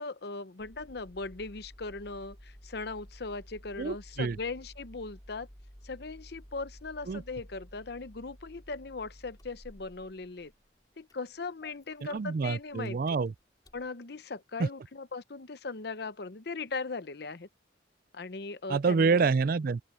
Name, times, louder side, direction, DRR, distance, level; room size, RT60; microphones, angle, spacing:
voice 1, 0.0-5.5 5.8-10.5 11.0-13.0 13.7-17.5 18.1-19.3, left 3 dB, 55° left, 0.8 m, -39 dB
Engine starting, 0.6-13.9, equal, 20° left, 4.2 m, -53 dB
voice 2, 3.8-4.4 7.1-7.2 12.0-13.3 14.6-14.7 18.7-19.8, right 4 dB, 50° right, 0.4 m, -27 dB
open air
head